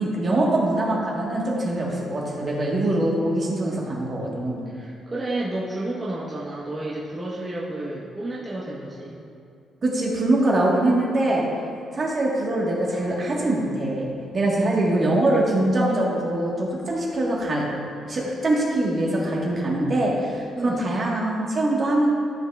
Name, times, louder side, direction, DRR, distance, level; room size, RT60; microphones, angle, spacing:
voice 1, 0.0-4.6 9.8-11.4 11.9-17.7 18.1-22.1, right 1 dB, 40° right, -3 dB, 1.5 m, -23 dB
voice 2, 3.7-4.1 4.7-9.2 14.5-14.9 20.5-20.8, right 2 dB, 20° right, -7 dB, 1.2 m, -32 dB
13.5 x 5.5 x 2.4 m, 2.4 s
cardioid pair, 105°, 0 cm